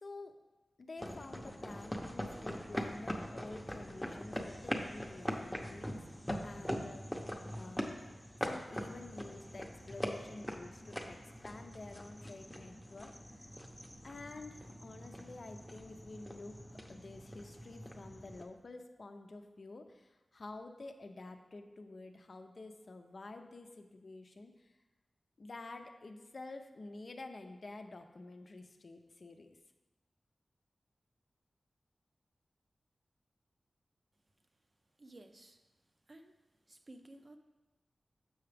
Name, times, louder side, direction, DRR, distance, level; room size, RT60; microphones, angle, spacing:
voice 1, 0.0-0.3 0.8-6.0 6.4-7.1 7.5-13.5 14.0-16.6 16.9-24.7 25.4-29.6, left 2 dB, 60° left, 5 dB, 0.6 m, -50 dB
sound 1, 1.0-18.4, equal, ahead, 0.7 m, -42 dB
voice 2, 35.0-35.6 36.1-36.4 36.7-37.4, right 1 dB, 40° right, 6 dB, 0.6 m, -55 dB
7.0 x 5.8 x 3.4 m, 1.1 s
wide cardioid pair, 70°, 0 cm